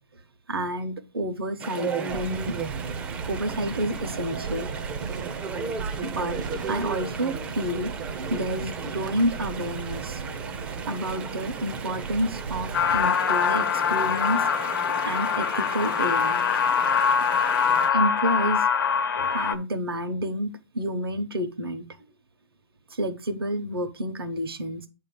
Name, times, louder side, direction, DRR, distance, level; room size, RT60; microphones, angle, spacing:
voice 1, 0.5-3.0 3.3-4.7 5.8-10.2 10.9-14.4 15.0-16.4 17.9-18.7 19.2-21.9 22.9-24.9, equal, 85° right, 1.0 m, -30 dB
Chatter / Stream, 1.6-17.9, right 4 dB, 10° right, 0.4 m, -36 dB
sound 1, 2.1-13.1, right 6 dB, 55° right, 0.6 m, -36 dB
sound 2, 12.7-19.5, left 6 dB, 65° left, 0.7 m, -23 dB
8.4 x 2.9 x 5.1 m
hypercardioid pair, 150°, 12 cm